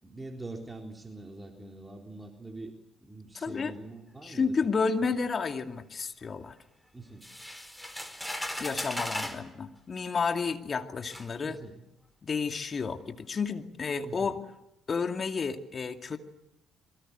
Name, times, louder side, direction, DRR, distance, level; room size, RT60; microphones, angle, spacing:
voice 1, 0.0-2.7 3.0-4.5 6.9-7.2 11.4-11.7 14.0-14.4, right 2 dB, 20° right, 3 dB, 3.8 m, -44 dB
voice 2, 3.3-3.7 4.2-6.6 8.6-11.6 12.2-14.4 14.9-16.2, left 5 dB, 40° left, 7 dB, 2.4 m, -31 dB
sound 1, 7.2-9.4 10.4-10.5 11.1-11.3, left 1 dB, 5° left, 4.3 m, -36 dB
27.0 x 23.5 x 7.9 m, 0.84 s
hypercardioid pair, 50°, 0 cm